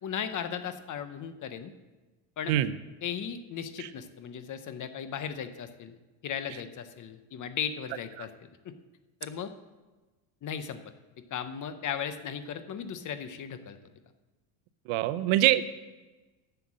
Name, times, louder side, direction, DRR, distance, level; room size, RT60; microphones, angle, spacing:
voice 1, 0.0-1.7 2.4-2.5 3.0-6.0 6.2-8.7 9.2-9.5 10.4-10.8 11.3-13.8, left 8 dB, 40° left, 11 dB, 0.8 m, -36 dB
voice 2, 14.9-15.7, right 13 dB, 75° right, 13 dB, 0.7 m, -24 dB
8.0 x 6.8 x 7.4 m, 1.2 s
supercardioid pair, 105°, 49 cm